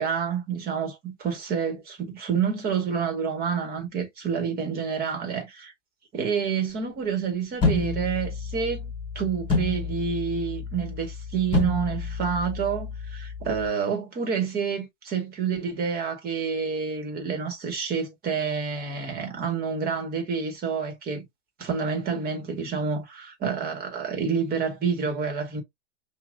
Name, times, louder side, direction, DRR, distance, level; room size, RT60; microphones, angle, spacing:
voice 1, 0.0-5.7 6.1-21.2 21.6-25.6, right 6 dB, 25° right, 1.7 m, -28 dB
sound 1, 7.6-13.7, left 3 dB, 15° left, 3.2 m, -29 dB
5.9 x 2.7 x 2.6 m
supercardioid pair, 145°, 35 cm